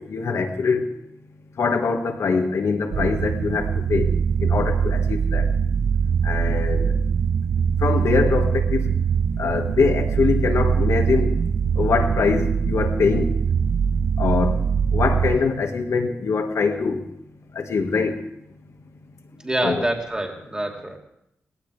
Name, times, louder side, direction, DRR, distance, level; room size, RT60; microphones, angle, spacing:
voice 1, 0.1-0.8 1.6-4.1 4.4-5.5 6.2-6.8 7.8-8.9 9.4-11.4 11.8-13.3 14.2-14.6 14.9-17.0 17.5-18.2 19.6-19.8, left 5 dB, 80° left, 4 dB, 1.8 m, -23 dB
sound 1, 2.9-15.4, right 6 dB, 80° right, 0.4 m, -22 dB
voice 2, 19.4-21.0, right 1 dB, 15° right, 1 dB, 2.7 m, -26 dB
19.0 x 16.5 x 3.5 m, 0.80 s
wide cardioid pair, 90°, 5 cm